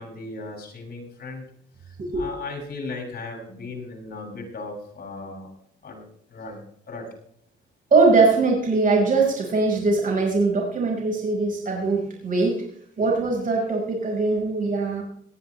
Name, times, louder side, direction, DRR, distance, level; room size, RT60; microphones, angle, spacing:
voice 1, 0.0-1.4 2.2-5.5 5.8-6.0 6.3-6.6 6.9-7.0, left 3 dB, 50° left, 1 dB, 7.5 m, -36 dB
voice 2, 7.9-12.5 13.0-15.0, right 3 dB, 40° right, -1 dB, 5.1 m, -21 dB
17.5 x 14.0 x 3.3 m, 0.69 s
cardioid pair, 90°, 20 cm